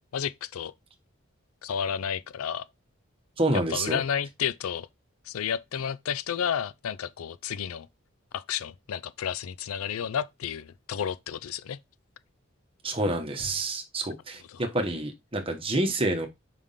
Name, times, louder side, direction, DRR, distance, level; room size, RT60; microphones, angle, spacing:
voice 1, 0.1-0.7 1.6-2.6 3.5-4.9 5.3-7.9 8.3-11.8 14.5-14.6, left 8 dB, 90° left, 0.4 m, -31 dB
voice 2, 3.4-4.0 12.8-16.3, right 2 dB, 25° right, 1.1 m, -28 dB
5.1 x 3.6 x 5.5 m
head